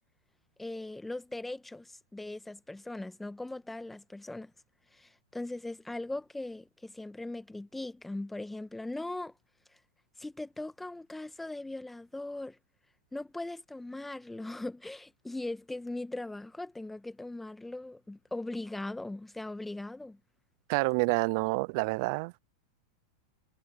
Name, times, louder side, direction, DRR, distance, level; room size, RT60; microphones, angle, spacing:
voice 1, 0.6-4.5 4.9-9.3 10.2-12.6 13.1-20.2, left 2 dB, 5° left, 1.5 m, -39 dB
voice 2, 20.7-22.4, right 29 dB, 55° right, 0.5 m, -28 dB
hypercardioid pair, 100°, 2 cm